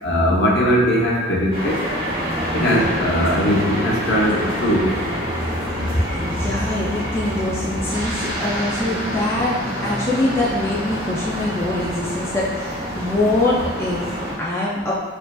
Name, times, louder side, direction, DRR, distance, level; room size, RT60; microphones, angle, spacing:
voice 1, 0.0-1.8 2.5-5.0, equal, 55° left, -4 dB, 0.7 m, -19 dB
sound 1, 1.5-14.3, equal, 25° right, 1.4 m, -26 dB
voice 2, 5.7-14.1 14.4-15.0, left 2 dB, 15° left, -6 dB, 0.3 m, -23 dB
4.7 x 2.5 x 2.3 m, 1.4 s
head